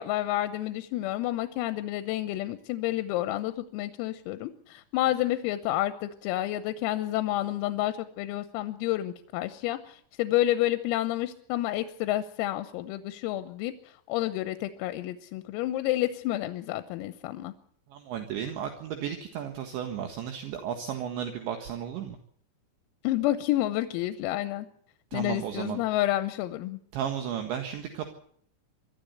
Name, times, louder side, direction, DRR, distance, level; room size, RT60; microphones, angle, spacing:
voice 1, 0.0-17.5 23.0-24.7 25.1-26.8, left 14 dB, 90° left, 10 dB, 3.7 m, -29 dB
voice 2, 17.9-22.2 25.1-25.8 26.9-28.1, right 9 dB, 65° right, 5 dB, 3.7 m, -34 dB
25.0 x 14.0 x 8.1 m, 0.63 s
omnidirectional pair, 5.9 m